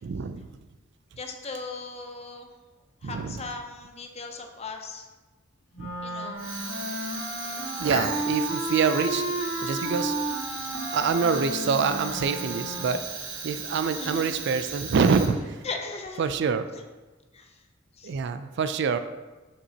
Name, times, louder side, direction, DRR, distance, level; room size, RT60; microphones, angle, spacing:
voice 1, 0.0-0.5 3.0-3.4 5.8-5.9 7.8-9.2 9.6-10.1 10.9-13.0 13.4-15.6 16.2-16.7 18.0-19.0, right 5 dB, 60° right, 10 dB, 0.4 m, -26 dB
voice 2, 1.2-2.5 3.0-5.1 6.0-6.5 13.9-14.4 15.6-16.3 16.7-16.8 17.3-17.6 18.0-18.1, left 3 dB, 30° left, 4 dB, 0.6 m, -38 dB
sound 1, 5.7-13.1, right 1 dB, 90° left, 1.5 m, -33 dB
Fire, 6.3-15.7, right 4 dB, 85° right, 1.2 m, -36 dB
6.6 x 6.0 x 2.8 m, 1.2 s
head